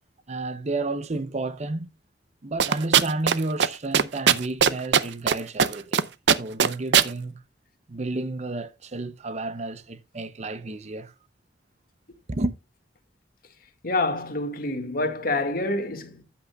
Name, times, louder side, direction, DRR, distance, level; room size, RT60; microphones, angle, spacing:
voice 1, 0.3-1.9 2.4-6.1 6.4-7.4 7.9-11.1 12.3-12.5, right 2 dB, 40° right, 0.7 m, -31 dB
sound 1, 2.6-3.3 3.6-3.7 3.9-5.3 5.6-6.0 6.3-7.1, right 7 dB, 80° right, 0.6 m, -18 dB
voice 2, 13.8-16.2, left 2 dB, 55° left, 1.9 m, -27 dB
13.0 x 8.7 x 2.3 m
head